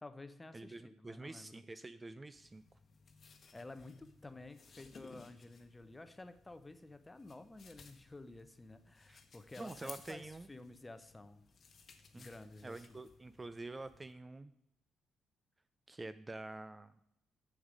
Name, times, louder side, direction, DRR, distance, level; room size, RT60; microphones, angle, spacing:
voice 1, 0.0-1.6 3.5-11.4 12.2-13.0, left 2 dB, 15° left, 11 dB, 0.7 m, -52 dB
voice 2, 0.5-2.6 9.1-9.2 9.6-10.5 12.1-12.3 12.6-14.5 15.9-16.9, right 2 dB, 20° right, 13 dB, 0.3 m, -47 dB
sound 1, 2.3-14.1, left 5 dB, 45° left, 1.1 m, -60 dB
7.3 x 6.9 x 5.1 m, 0.77 s
cardioid pair, 90°, 0 cm